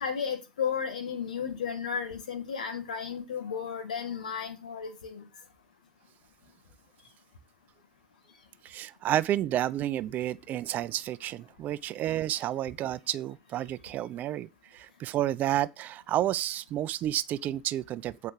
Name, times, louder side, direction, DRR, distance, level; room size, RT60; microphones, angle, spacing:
voice 1, 0.0-5.2, left 7 dB, 80° left, 1.8 m, -33 dB
voice 2, 8.6-18.3, right 12 dB, 45° right, 0.5 m, -31 dB
8.3 x 4.8 x 4.7 m
figure-of-eight pair, 75°, 4 cm